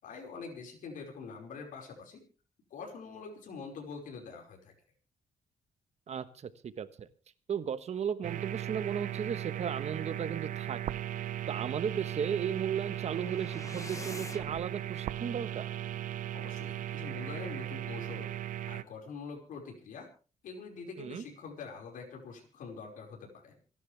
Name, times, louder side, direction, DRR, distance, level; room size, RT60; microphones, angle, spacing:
voice 1, 0.0-2.2 2.7-4.7 16.3-18.3 18.6-20.1 20.4-23.7, left 5 dB, 85° left, 0 dB, 5.3 m, -45 dB
voice 2, 6.1-7.1 7.5-10.8 11.5-15.7 21.0-21.2, right 8 dB, 55° right, 12 dB, 1.3 m, -35 dB
sound 1, 8.2-18.8, right 12 dB, 80° right, 0.7 m, -37 dB
sound 2, 12.5-14.7, left 3 dB, 25° left, 1.0 m, -47 dB
28.0 x 11.0 x 3.4 m, 0.36 s
cardioid pair, 115°, 13 cm